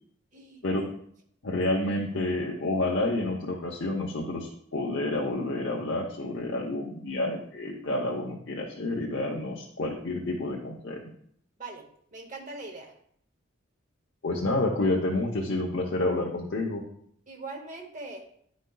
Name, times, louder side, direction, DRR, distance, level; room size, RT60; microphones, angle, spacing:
voice 1, 0.3-0.6 11.6-12.9 17.3-18.2, right 3 dB, 40° right, 2 dB, 0.9 m, -41 dB
voice 2, 1.4-11.1 14.2-16.8, left 2 dB, 60° left, -2 dB, 0.8 m, -29 dB
10.5 x 5.2 x 2.3 m, 0.65 s
head